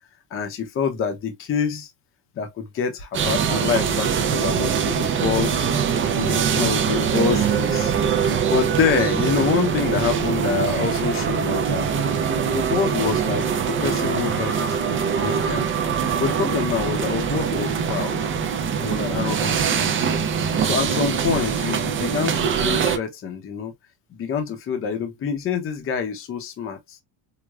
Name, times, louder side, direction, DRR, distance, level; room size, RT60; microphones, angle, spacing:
voice 1, 0.3-1.9 2.4-5.6 6.1-11.9 12.5-14.8 15.2-15.7 16.2-18.2 18.8-19.9 20.6-23.7 24.1-27.0, left 6 dB, 30° left, 0.7 m, -26 dB
sound 1, 3.1-23.0, right 7 dB, 30° right, 0.5 m, -23 dB
4.8 x 2.1 x 2.3 m
cardioid pair, 165°, 43 cm